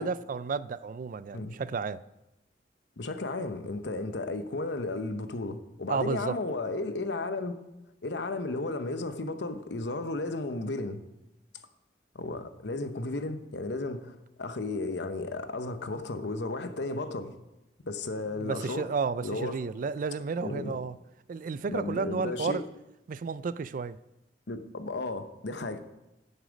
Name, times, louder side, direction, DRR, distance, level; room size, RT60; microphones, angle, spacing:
voice 1, 0.0-2.0 5.9-6.4 18.3-21.0 21.3-22.7 23.1-24.0, right 5 dB, 50° right, 0.4 m, -32 dB
voice 2, 3.0-7.6 8.0-11.0 12.1-17.3 17.8-18.9 19.2-19.6 20.4-20.8 21.7-22.6 24.5-25.8, left 2 dB, 80° left, 0.9 m, -34 dB
10.0 x 8.1 x 5.1 m
head